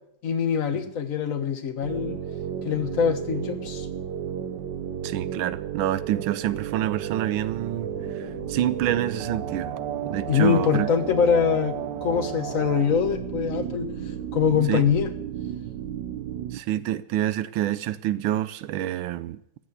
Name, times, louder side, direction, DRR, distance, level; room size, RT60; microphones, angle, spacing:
voice 1, 0.2-2.2 2.6-3.9 10.3-13.9 14.3-15.1, left 7 dB, 45° left, 1.5 m, -23 dB
sound 1, 1.8-16.6, right 10 dB, 70° right, 1.3 m, -33 dB
voice 2, 5.0-7.9 8.5-9.7 10.1-10.9 14.7-14.8 16.5-19.4, right 12 dB, 90° right, 1.5 m, -27 dB
sound 2, 7.7-14.4, left 1 dB, 65° left, 3.5 m, -41 dB
14.5 x 7.5 x 8.1 m
omnidirectional pair, 2.1 m